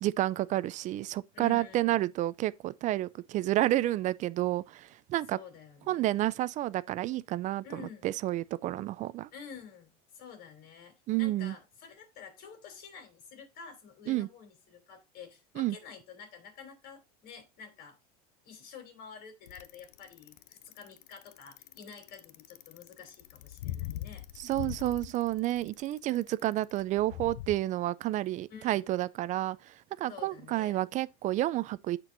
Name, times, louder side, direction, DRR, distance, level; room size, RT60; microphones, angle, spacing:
voice 1, 0.0-5.4 5.9-9.3 11.1-11.5 14.1-14.3 15.6-15.8 24.4-32.0, right 15 dB, 40° right, 0.4 m, -30 dB
voice 2, 1.3-2.1 5.3-6.4 7.6-8.1 9.3-18.0 18.4-24.2 28.5-29.0 30.1-30.8, left 6 dB, 50° left, 3.4 m, -49 dB
Bicycle, 19.5-27.5, left 13 dB, 75° left, 0.6 m, -42 dB
13.5 x 4.5 x 2.6 m
supercardioid pair, 110°, 19 cm